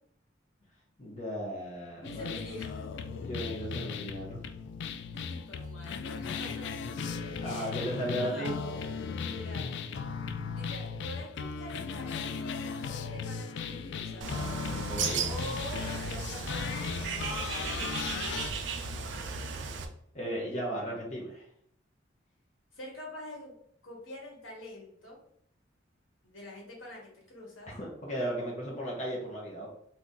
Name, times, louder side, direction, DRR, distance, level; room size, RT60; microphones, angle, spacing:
voice 1, 1.0-2.4 3.2-4.4 7.4-8.6 14.7-15.3 20.1-21.5 27.7-29.7, right 1 dB, 40° left, -4 dB, 0.8 m, -35 dB
voice 2, 2.0-2.9 5.1-6.7 7.4-7.9 8.2-8.5 9.2-9.7 10.5-14.3 15.2-18.2 22.7-23.5 23.8-25.2 26.2-27.7, left 1 dB, 80° left, -2 dB, 1.3 m, -45 dB
sound 1, 2.0-18.5, left 5 dB, 60° left, 0.3 m, -37 dB
Bird, 14.2-19.9, right 5 dB, 65° right, 0.5 m, -36 dB
2.8 x 2.6 x 3.6 m, 0.69 s
head